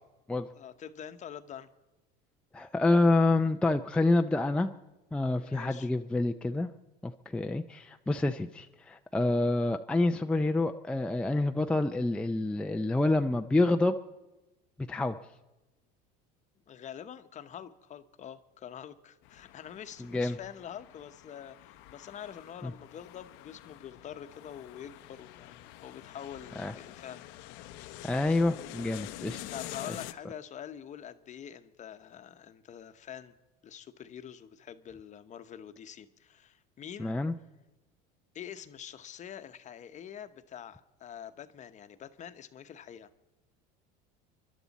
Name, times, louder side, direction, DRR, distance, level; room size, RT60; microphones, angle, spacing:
voice 1, 0.5-1.7 5.3-5.9 16.7-27.2 29.5-33.3 33.6-37.2 38.3-43.1, left 9 dB, 35° left, 10 dB, 0.9 m, -45 dB
voice 2, 2.5-4.7 5.1-6.7 7.0-14.0 14.9-15.2 20.1-20.4 22.6-22.7 26.6-26.7 28.0-29.4 37.0-37.3, left 2 dB, 5° left, 5 dB, 0.4 m, -27 dB
sound 1, 19.2-30.1, left 15 dB, 70° left, 0.7 m, -47 dB
29.0 x 11.5 x 4.1 m, 1.0 s
supercardioid pair, 115°, 21 cm